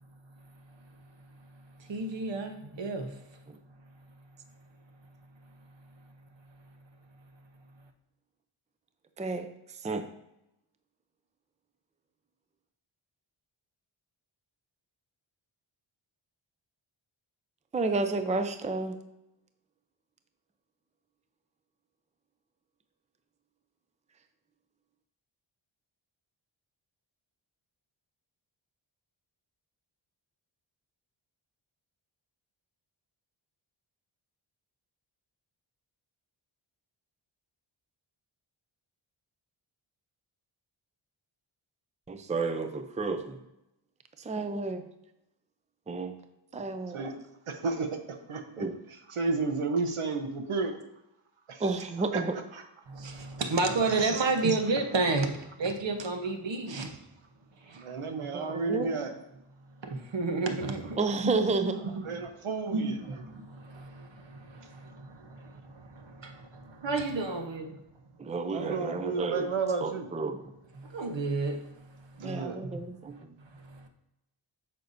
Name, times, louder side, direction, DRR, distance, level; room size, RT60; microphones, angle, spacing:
voice 1, 1.8-3.2 52.9-57.0 57.6-57.8 58.4-58.5 59.8-61.0 61.2-61.4 61.9-62.0 62.7-67.8 70.8-72.2 72.6-72.8 73.4-73.9, right 3 dB, 60° right, 1.1 m, -32 dB
voice 2, 9.2-10.0 17.7-19.0 42.1-43.4 44.2-44.8 45.9-46.1 46.5-47.0 48.6-48.7 51.6-52.4 58.3-59.0 61.0-61.8 68.2-69.5 69.8-70.5 72.2-73.3, right 3 dB, 15° right, 0.5 m, -31 dB
voice 3, 47.5-48.6 49.1-50.8 51.5-51.6 52.1-52.2 52.5-52.6 57.7-59.1 62.0-62.9 68.5-70.1 72.2-72.6, right 4 dB, 85° right, 1.1 m, -32 dB
9.2 x 6.6 x 2.7 m
wide cardioid pair, 110°, 49 cm